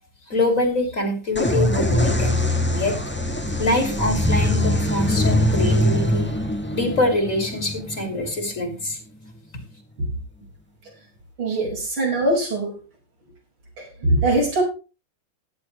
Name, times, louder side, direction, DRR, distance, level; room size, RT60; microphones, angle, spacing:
voice 1, 0.3-2.4 2.7-3.0 3.6-6.3 6.7-9.0, left 2 dB, 35° left, 5 dB, 3.1 m, -24 dB
sound 1, 1.4-8.9, left 1 dB, 5° left, 1.1 m, -22 dB
voice 2, 11.4-12.8 13.8-14.6, right 1 dB, 80° right, 0 dB, 6.1 m, -22 dB
16.0 x 10.0 x 3.1 m, 0.32 s
omnidirectional pair, 2.3 m